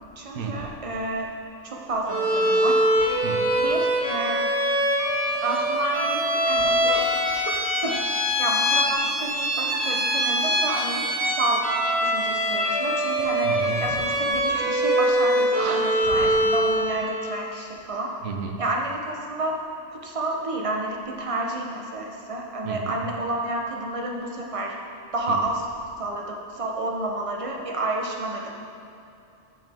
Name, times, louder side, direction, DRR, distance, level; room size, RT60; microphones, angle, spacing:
voice 1, 0.2-1.3 1.6-2.8 3.5-4.5 5.4-7.0 7.4-7.5 7.8-7.9 8.4-11.6 12.0-13.5 13.8-18.1 18.6-19.6 19.9-24.7 25.1-25.7 26.0-28.5, right 2 dB, 35° right, 0 dB, 0.7 m, -30 dB
Bowed string instrument, 2.1-16.9, equal, 55° right, 1.6 m, -23 dB
voice 2, 13.4-14.0 15.6-15.8 18.2-18.6 22.6-23.0 25.3-25.4, right 5 dB, 90° right, 3 dB, 1.0 m, -32 dB
8.7 x 5.5 x 3.5 m, 2.6 s
omnidirectional pair, 1.2 m